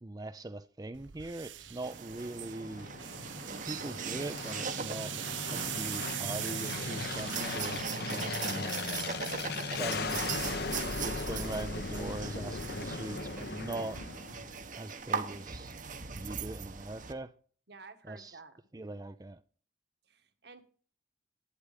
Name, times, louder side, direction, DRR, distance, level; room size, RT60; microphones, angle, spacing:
voice 1, 0.0-2.9 3.7-5.2 5.5-8.7 9.7-10.2 11.0-14.0 14.8-15.7 16.2-17.3 18.1-18.4 18.7-19.4, right 2 dB, 20° right, 0.5 m, -41 dB
sound 1, 0.9-9.6, right 13 dB, 85° right, 0.7 m, -42 dB
sound 2, 1.8-17.1, right 6 dB, 45° right, 1.0 m, -40 dB
Aircraft, 2.0-14.7, left 3 dB, 55° left, 1.0 m, -38 dB
voice 2, 17.7-18.6 20.0-20.6, right 4 dB, 60° right, 1.6 m, -52 dB
11.5 x 9.9 x 5.1 m
head